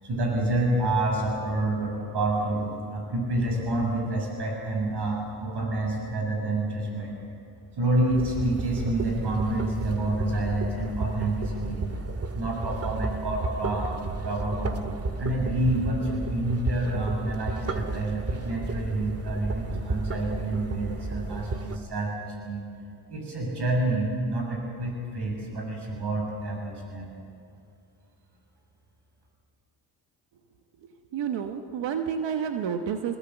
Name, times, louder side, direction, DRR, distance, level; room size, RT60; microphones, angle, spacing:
voice 1, 0.0-7.2 7.8-11.9 12.3-14.8 15.2-22.7 23.1-27.1, right 1 dB, 65° right, 0 dB, 7.2 m, -28 dB
sound 1, 8.1-21.8, right 3 dB, 35° right, 1.8 m, -33 dB
voice 2, 31.1-33.2, right 7 dB, 80° right, 6 dB, 1.2 m, -29 dB
22.5 x 21.0 x 7.9 m, 2.5 s
cardioid pair, 60°, 43 cm